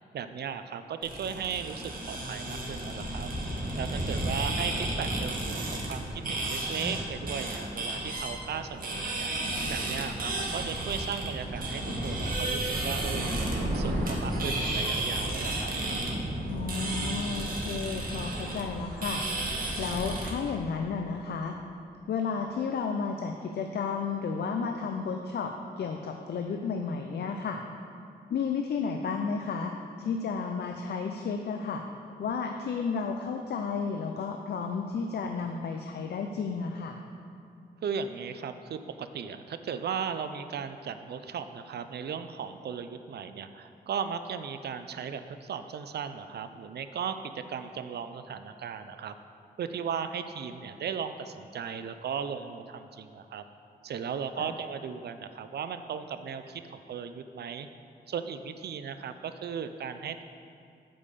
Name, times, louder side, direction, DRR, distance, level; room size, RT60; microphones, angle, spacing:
voice 1, 0.1-3.3 3.8-15.7 37.8-49.2 49.6-53.4 53.8-57.7 58.1-60.2, right 7 dB, 75° right, 10 dB, 0.5 m, -36 dB
sound 1, 1.0-20.3, right 1 dB, 55° right, 1.8 m, -32 dB
voice 2, 16.5-19.2 19.8-21.5 22.1-27.6 28.3-29.7 30.0-31.8 32.2-37.0 54.4-54.5, left 5 dB, 80° left, 4 dB, 0.6 m, -32 dB
8.6 x 5.4 x 6.8 m, 2.5 s
wide cardioid pair, 95°, 17 cm